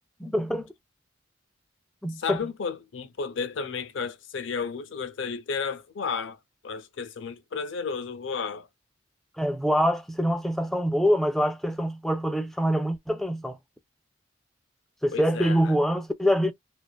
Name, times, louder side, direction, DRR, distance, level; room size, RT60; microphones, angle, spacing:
voice 1, 0.2-0.7 2.0-2.4 9.4-13.6 15.0-16.5, equal, ahead, 0.3 m, -25 dB
voice 2, 2.2-6.4 6.6-8.7 15.1-15.8, left 5 dB, 70° left, 0.5 m, -32 dB
2.4 x 2.3 x 2.2 m
head